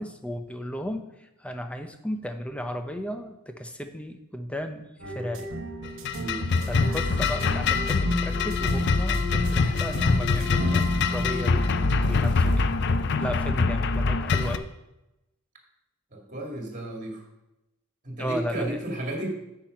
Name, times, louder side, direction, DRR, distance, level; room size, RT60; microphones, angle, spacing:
voice 1, 0.0-5.5 6.6-11.7 12.0-12.7 13.2-14.7 18.2-18.8, equal, 5° left, 6 dB, 0.6 m, -34 dB
sound 1, 5.0-12.5, equal, 65° right, 1.0 m, -33 dB
sound 2, 5.8-14.6, left 4 dB, 55° left, 0.5 m, -24 dB
voice 2, 16.1-17.2 18.0-19.3, right 1 dB, 35° right, 0 dB, 2.0 m, -33 dB
8.9 x 5.8 x 5.2 m, 0.92 s
head